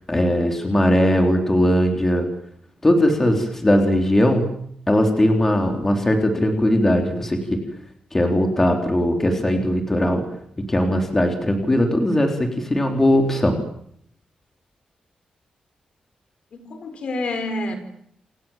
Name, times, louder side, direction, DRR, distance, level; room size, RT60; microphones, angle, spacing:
voice 1, 0.1-2.3 2.8-4.5 4.9-7.6 8.1-10.2 10.7-13.6, left 1 dB, 15° left, 4 dB, 3.9 m, -19 dB
voice 2, 16.5-17.8, left 2 dB, 50° left, 9 dB, 4.5 m, -28 dB
29.0 x 27.0 x 7.5 m, 0.69 s
wide cardioid pair, 180°, 2 cm